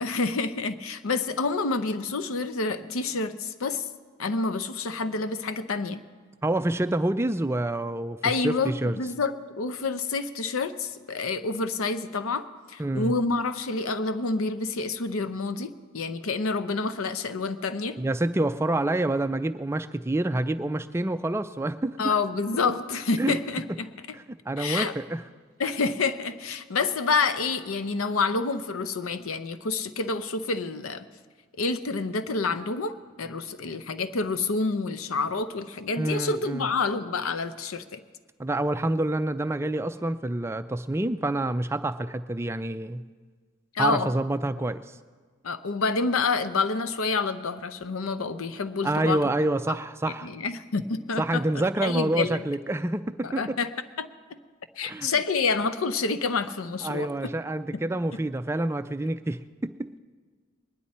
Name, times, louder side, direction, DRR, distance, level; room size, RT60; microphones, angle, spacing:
voice 1, 0.0-3.9 4.2-6.0 8.2-18.0 22.0-23.9 24.6-24.9 25.6-31.1 31.6-38.0 43.7-44.1 45.4-49.2 50.2-51.4 51.8-52.4 53.2-53.7 54.0-54.1 54.8-57.1, left 4 dB, 85° left, 11 dB, 0.7 m, -28 dB
voice 2, 6.4-9.0 12.8-13.1 18.0-22.1 23.2-23.4 24.1-25.2 36.0-36.7 38.4-43.0 43.8-44.8 48.8-50.3 51.2-53.6 54.8-55.1 56.8-59.7, right 1 dB, 10° right, 10 dB, 0.3 m, -27 dB
21.0 x 10.5 x 4.2 m, 1.5 s
head